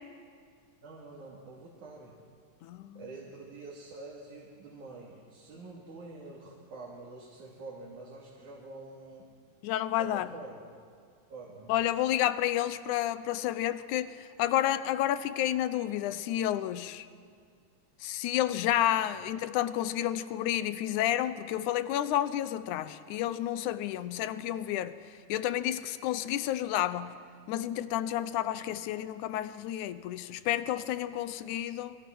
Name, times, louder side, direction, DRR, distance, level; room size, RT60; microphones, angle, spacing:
voice 1, 0.8-2.2 3.0-9.3 10.0-10.8 11.3-11.8 19.1-19.2, right 3 dB, 65° right, -4 dB, 4.1 m, -46 dB
voice 2, 2.6-3.0 9.6-10.3 11.7-17.1 18.0-25.0 25.3-27.2 27.5-32.0, left 12 dB, 75° left, 14 dB, 2.0 m, -30 dB
28.5 x 21.5 x 6.1 m, 2.2 s
omnidirectional pair, 3.9 m